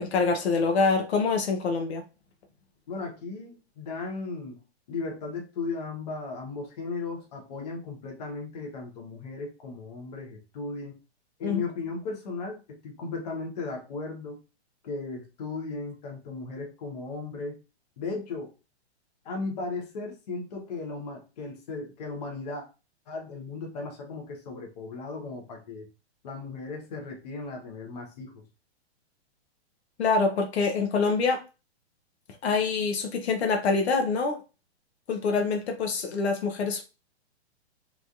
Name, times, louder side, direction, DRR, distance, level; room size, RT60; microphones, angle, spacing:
voice 1, 0.0-2.0 11.4-11.6 30.0-31.4 32.4-34.4 35.1-36.8, left 4 dB, 70° left, 0.8 m, -25 dB
voice 2, 2.9-4.6 4.9-11.0 11.4-14.4 14.8-17.6 18.0-18.5 19.2-22.6 23.1-25.9 26.2-28.5, left 3 dB, 35° left, 0.9 m, -36 dB
3.1 x 2.7 x 2.4 m
hypercardioid pair, 170°, 33 cm